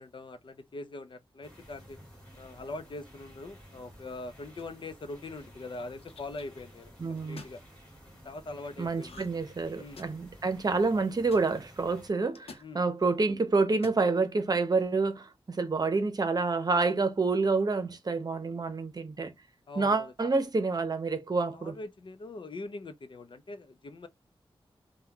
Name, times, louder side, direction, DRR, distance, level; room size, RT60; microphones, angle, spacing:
voice 1, 0.0-2.0 2.4-7.6 8.2-9.2 9.8-10.1 12.6-12.8 19.7-20.1 21.5-24.1, left 2 dB, 55° left, 0.6 m, -42 dB
sound 1, 1.4-12.1, equal, 10° left, 2.5 m, -53 dB
sound 2, 4.6-4.9 5.7-6.4 7.2-7.6 9.0-9.4 9.7-10.3 11.3-11.5 12.3-12.7 13.7-14.0, left 4 dB, 85° left, 0.8 m, -49 dB
voice 2, 7.0-7.4 8.8-19.3 19.8-21.8, right 3 dB, 40° right, 0.8 m, -28 dB
5.6 x 2.3 x 2.9 m
wide cardioid pair, 120°, 10 cm